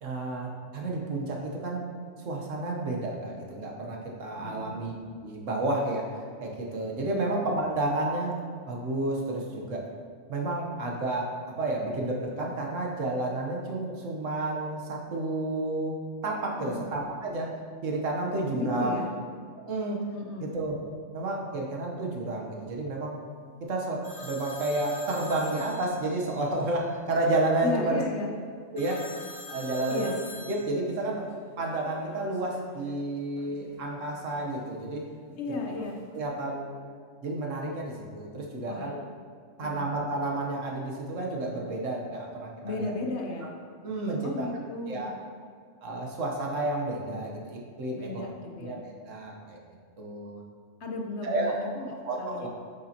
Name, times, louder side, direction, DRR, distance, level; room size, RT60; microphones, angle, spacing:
voice 1, 0.0-1.9 2.2-6.0 6.4-8.4 8.7-9.8 10.3-11.3 11.6-17.6 17.8-19.0 19.6-20.1 20.4-20.8 21.1-23.2 23.6-28.0 28.7-29.2 29.5-30.1 30.5-31.3 31.6-35.1 36.1-36.8 37.2-39.0 39.6-42.9 43.4-43.5 43.8-44.5 44.9-45.1 45.8-48.2 48.6-49.6 50.0-50.4 51.2-51.6 52.0-52.5, right 2 dB, 75° right, -1 dB, 1.5 m, -31 dB
voice 2, 4.4-4.8 7.1-7.3 16.5-16.8 18.5-19.1 20.1-20.5 27.6-28.3 29.9-30.2 35.4-36.0 38.7-38.9 39.6-39.9 42.6-43.5 44.2-45.1 48.0-48.8 50.8-52.5, left 2 dB, 60° left, 1 dB, 1.1 m, -34 dB
sound 1, 24.0-26.5 28.8-33.0 33.4-34.5 35.3-36.2, left 2 dB, 30° left, 0.9 m, -46 dB
8.3 x 6.7 x 2.9 m, 2.1 s
omnidirectional pair, 1.3 m